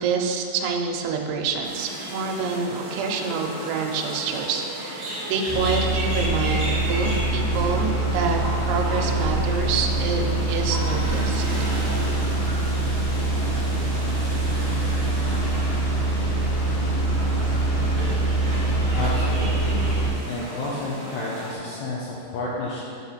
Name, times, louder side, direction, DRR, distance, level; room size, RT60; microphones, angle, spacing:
voice 1, 0.0-11.5, right 5 dB, 90° right, 1 dB, 3.0 m, -27 dB
sound 1, 1.6-21.5, right 1 dB, 60° right, 1.0 m, -34 dB
sound 2, 5.5-20.1, right 2 dB, 60° left, 2.3 m, -24 dB
voice 2, 18.9-19.9 20.3-22.8, left 2 dB, 75° left, -6 dB, 2.9 m, -31 dB
9.8 x 4.8 x 5.5 m, 2.5 s
omnidirectional pair, 5.2 m